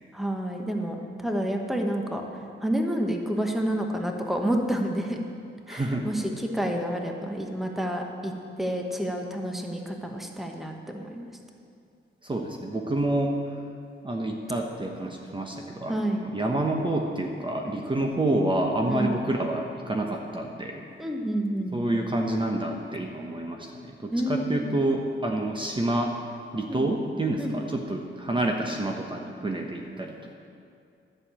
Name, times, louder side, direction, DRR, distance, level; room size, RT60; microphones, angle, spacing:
voice 1, 0.1-2.2 2.6-5.2 5.7-8.3 8.6-11.3 15.9-16.2 18.9-19.1 21.0-21.8 24.1-24.7 26.7-26.9 27.4-27.5, right 1 dB, ahead, 2 dB, 1.2 m, -29 dB
voice 2, 5.7-6.1 12.2-13.4 14.0-20.8 21.7-23.7 24.0-26.1 26.5-30.3, right 1 dB, 25° right, 1 dB, 1.0 m, -28 dB
11.0 x 6.7 x 8.7 m, 2.4 s
cardioid pair, 100°, 21 cm